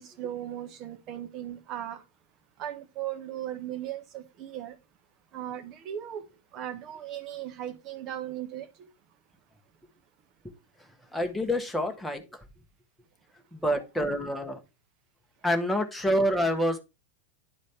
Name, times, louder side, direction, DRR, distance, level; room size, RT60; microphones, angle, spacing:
voice 1, 0.0-2.0 2.6-4.8 5.3-6.2 6.5-8.9, right 11 dB, 35° right, 1.1 m, -37 dB
voice 2, 11.1-12.4 13.5-14.6 15.4-16.8, equal, 5° left, 1.2 m, -27 dB
10.5 x 4.0 x 3.3 m
figure-of-eight pair, 90°, 0 cm